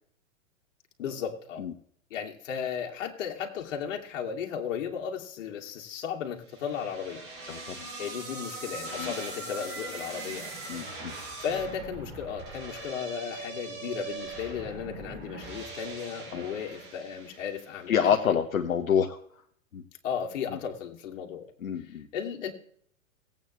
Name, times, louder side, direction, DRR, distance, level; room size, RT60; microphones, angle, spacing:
voice 1, 1.0-1.6 2.1-7.2 8.0-10.5 11.4-18.2 20.0-21.5 21.8-22.5, left 7 dB, 65° left, 1 dB, 2.6 m, -35 dB
sound 1, 6.5-17.8, right 3 dB, 35° right, 5.8 m, -41 dB
voice 2, 7.5-7.9 9.0-9.1 10.7-11.1 16.3-16.4 17.9-19.2 19.7-19.8 20.5-20.6 21.6-22.1, left 8 dB, 90° left, 4 dB, 1.2 m, -27 dB
18.0 x 8.9 x 3.2 m, 0.63 s
hypercardioid pair, 120°, 40 cm